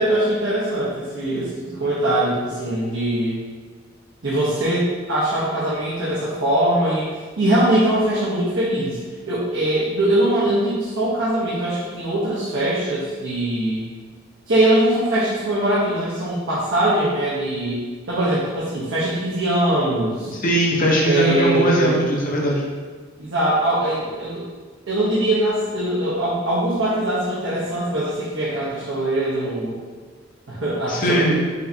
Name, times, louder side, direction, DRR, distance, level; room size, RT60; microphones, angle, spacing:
voice 1, 0.0-3.4 4.2-7.1 7.4-9.0 9.3-13.8 14.5-17.8 18.1-20.3 21.0-22.0 23.2-24.4 24.9-29.8 30.5-31.3, right 1 dB, 70° right, -9 dB, 1.0 m, -22 dB
voice 2, 20.4-22.6 30.9-31.3, equal, 45° left, -3 dB, 0.9 m, -20 dB
5.3 x 3.3 x 2.8 m, 1.4 s
head